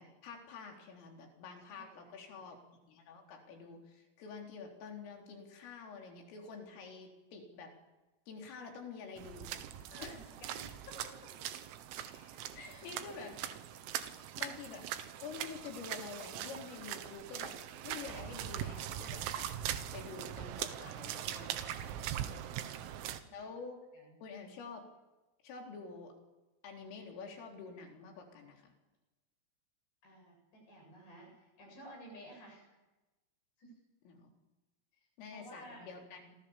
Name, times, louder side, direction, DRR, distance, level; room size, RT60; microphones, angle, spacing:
voice 1, 0.0-7.7 8.3-9.5 10.0-10.2 12.1-13.4 14.4-14.9 15.2-17.6 17.8-19.5 19.9-21.9 23.3-23.8 24.2-24.9 25.4-26.2 26.6-28.7 34.1-34.3 35.2-36.4, left 5 dB, 75° left, 2 dB, 6.3 m, -48 dB
voice 2, 1.7-2.4 9.9-11.3 12.5-12.8 13.1-13.3 22.3-23.4 23.9-24.1 30.0-32.7 33.6-33.7 35.3-35.9, equal, 55° left, 2 dB, 9.9 m, -54 dB
sound 1, 9.2-23.2, right 11 dB, 85° right, 4.1 m, -41 dB
28.0 x 27.0 x 7.3 m, 1.1 s
omnidirectional pair, 5.9 m